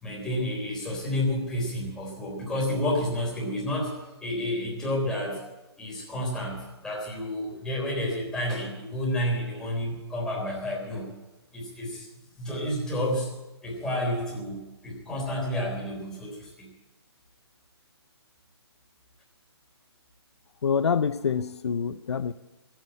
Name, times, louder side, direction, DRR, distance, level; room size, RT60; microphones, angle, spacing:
voice 1, 0.0-5.4 5.8-11.1 11.5-12.1 12.4-13.3 13.6-16.7, left 1 dB, 5° left, -4 dB, 3.8 m, -30 dB
voice 2, 20.6-22.3, left 6 dB, 75° left, 13 dB, 0.7 m, -26 dB
15.5 x 9.3 x 8.8 m, 1.0 s
hypercardioid pair, 165°, 14 cm